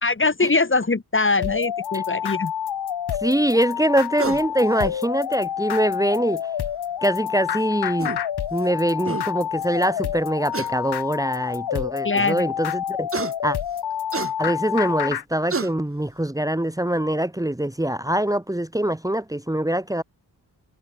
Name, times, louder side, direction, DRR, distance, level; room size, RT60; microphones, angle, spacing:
voice 1, 0.0-2.5 12.0-12.5, left 3 dB, 30° left, 2.9 m, -22 dB
sound 1, 1.4-15.2, left 9 dB, 70° left, 1.3 m, -28 dB
voice 2, 3.2-6.4 7.0-8.1 8.5-13.1 13.4-13.6 14.4-20.0, right 1 dB, 10° right, 2.1 m, -23 dB
sound 2, 4.2-4.5 5.9-6.0 7.6-7.7 8.0-8.2 8.7-8.8 9.1-9.3 10.5-10.7 11.5-11.6 13.1-13.3 14.1-14.3 15.1-15.2 15.5-15.7, right 4 dB, 30° right, 1.6 m, -28 dB
cardioid pair, 70°, 41 cm